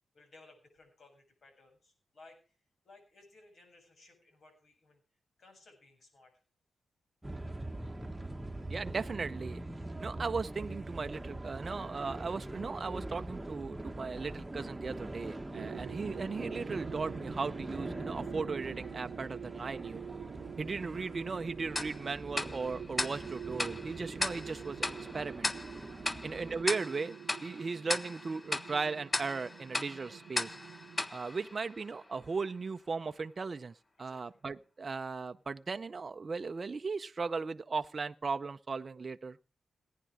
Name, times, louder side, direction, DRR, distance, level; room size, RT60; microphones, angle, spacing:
voice 1, 0.1-2.6 2.8-6.3 26.1-26.3 34.0-34.4, left 2 dB, 60° left, 4 dB, 7.4 m, -60 dB
sound 1, 7.2-26.6, right 1 dB, 10° right, 1.4 m, -43 dB
voice 2, 8.7-9.6 10.0-20.0 20.6-24.9 25.1-25.5 26.2-27.1 27.4-30.6 31.1-39.4, right 4 dB, 40° right, 8 dB, 0.6 m, -37 dB
sound 2, 15.5-31.1, right 8 dB, 85° right, 0.6 m, -46 dB
Tick-tock, 21.8-32.2, left 2 dB, 25° left, 0.7 m, -38 dB
17.5 x 10.5 x 4.8 m, 0.35 s
cardioid pair, 100°, 0 cm